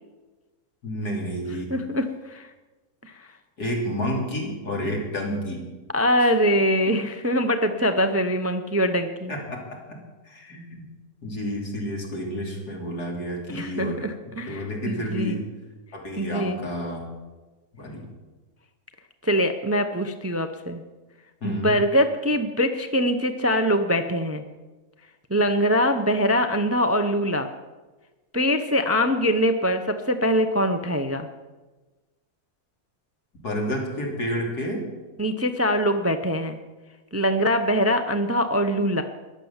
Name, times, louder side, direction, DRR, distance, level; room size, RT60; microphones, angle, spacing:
voice 1, 0.8-1.7 3.6-5.6 6.9-7.0 9.3-10.0 10.3-10.8 11.2-14.0 14.5-15.4 15.9-17.0 17.8-18.0 21.4-21.8 33.4-34.8, equal, 85° left, -1 dB, 3.7 m, -30 dB
voice 2, 1.7-2.5 3.0-3.3 5.9-9.3 13.5-15.4 16.2-16.6 19.2-20.8 21.4-24.4 25.3-27.5 28.3-31.3 35.2-36.6 37.1-39.0, equal, 15° right, 8 dB, 0.5 m, -23 dB
14.0 x 10.5 x 7.2 m, 1.2 s
omnidirectional pair, 1.6 m